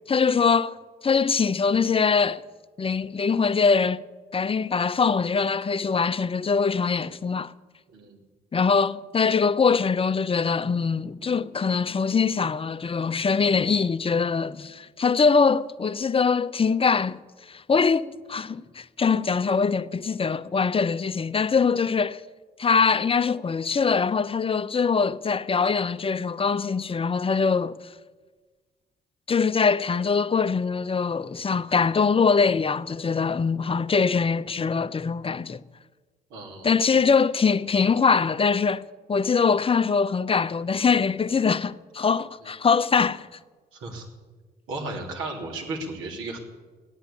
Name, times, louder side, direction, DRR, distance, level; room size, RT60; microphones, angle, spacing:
voice 1, 0.1-0.8 1.0-2.4 2.8-4.0 4.3-7.5 8.5-17.2 17.5-22.2 22.6-27.8 29.3-35.6 36.6-43.3, left 5 dB, 25° left, 0.7 m, -23 dB
voice 2, 36.3-36.7 42.4-42.5 43.7-44.1 44.7-46.4, right 2 dB, 75° right, 3.3 m, -34 dB
15.5 x 10.5 x 8.5 m
hypercardioid pair, 50°, 21 cm